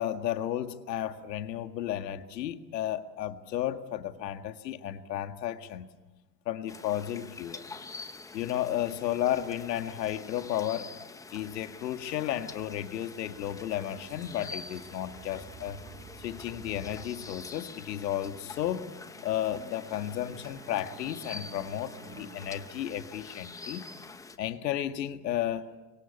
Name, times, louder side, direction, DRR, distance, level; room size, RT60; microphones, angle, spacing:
voice 1, 0.0-5.9 6.5-7.7 8.3-10.9 11.3-15.8 16.2-18.9 19.2-23.8 24.4-25.7, left 11 dB, 75° left, 2.0 m, -33 dB
sound 1, 6.7-24.4, left 4 dB, 5° left, 0.8 m, -46 dB
sound 2, 13.2-23.3, right 5 dB, 20° right, 2.2 m, -52 dB
28.5 x 24.0 x 8.4 m
hypercardioid pair, 135°, 50 cm